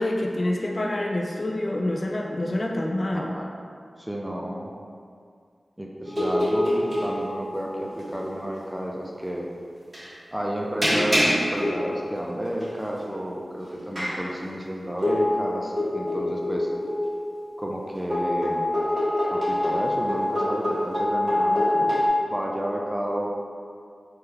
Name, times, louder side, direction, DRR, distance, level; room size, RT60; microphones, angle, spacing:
voice 1, 0.0-3.3, left 1 dB, 45° left, 0 dB, 0.4 m, -27 dB
voice 2, 3.1-3.5 4.0-4.7 5.8-9.5 10.3-16.7 17.6-18.7 19.3-23.3, equal, 10° right, -1 dB, 0.5 m, -31 dB
sound 1, 6.0-7.6 8.0-8.3 9.9-10.1 10.8-12.2 12.6-12.7 13.9-14.2 15.0-17.4 18.1-22.1, left 1 dB, 30° right, 1.4 m, -25 dB
3.7 x 3.3 x 2.9 m, 2.2 s
wide cardioid pair, 60°, 0 cm